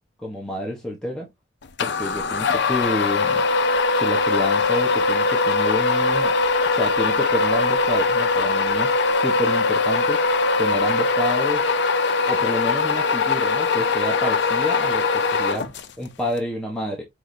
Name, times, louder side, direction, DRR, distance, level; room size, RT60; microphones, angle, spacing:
voice 1, 0.2-1.3 1.8-3.4 4.0-6.3 6.7-10.2 10.6-11.7 12.2-17.0, left 1 dB, 5° left, 1.0 m, -29 dB
sound 1, 1.8-16.1, left 4 dB, 65° left, 0.5 m, -21 dB
5.6 x 3.3 x 2.6 m
head